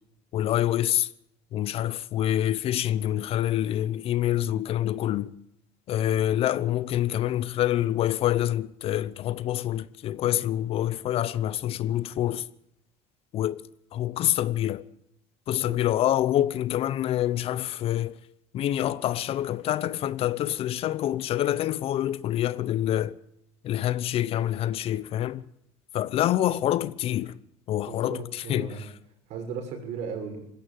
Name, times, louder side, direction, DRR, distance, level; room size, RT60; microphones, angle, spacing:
voice 1, 0.3-1.1 1.5-5.3 5.9-12.5 13.3-14.8 15.5-18.2 18.5-23.2 23.6-25.4 25.9-27.3 27.7-28.9, left 12 dB, 45° left, 0.9 m, -26 dB
voice 2, 27.9-28.8 29.3-30.4, right 6 dB, 60° right, 6.7 m, -36 dB
20.0 x 15.5 x 8.8 m
cardioid pair, 125°, 13 cm